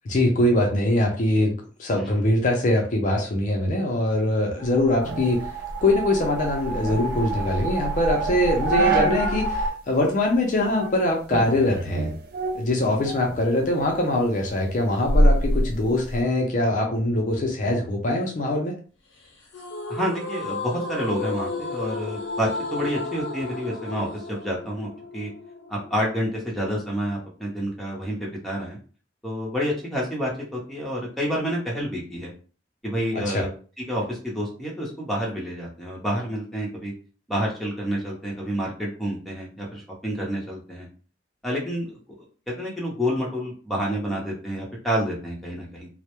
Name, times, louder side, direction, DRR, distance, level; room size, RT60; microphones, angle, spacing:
voice 1, 0.1-5.5 5.8-12.1 12.5-18.7 33.1-33.4, left 1 dB, 40° left, 0 dB, 0.4 m, -23 dB
sound 1, 4.6-9.7, right 2 dB, 90° right, 0.7 m, -29 dB
sound 2, 5.0-9.5 9.9-10.0 10.6-11.0 11.3-13.4 13.8-16.2, right 1 dB, 55° right, 0.4 m, -26 dB
sound 3, 19.5-26.6, left 3 dB, 90° left, 0.6 m, -33 dB
voice 2, 19.9-25.3 25.7-28.8 29.2-32.3 32.8-33.5 33.9-36.9 37.3-40.9 41.4-41.9 42.5-45.9, equal, ahead, -4 dB, 0.7 m, -29 dB
2.1 x 2.0 x 2.9 m, 0.39 s
head